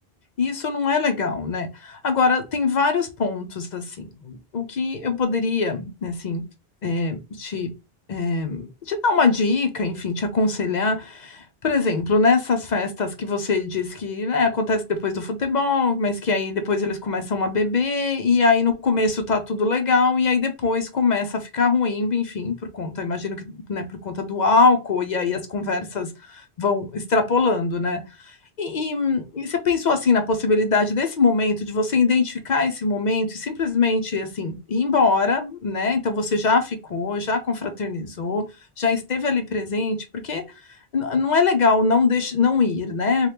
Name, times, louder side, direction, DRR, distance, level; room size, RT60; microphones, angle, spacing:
voice 1, 0.4-6.4 6.8-7.7 8.1-26.1 26.6-38.4 38.8-40.0 40.2-40.4 40.9-43.3, left 4 dB, 55° left, 0.6 m, -22 dB
2.8 x 2.3 x 3.3 m
omnidirectional pair, 1.0 m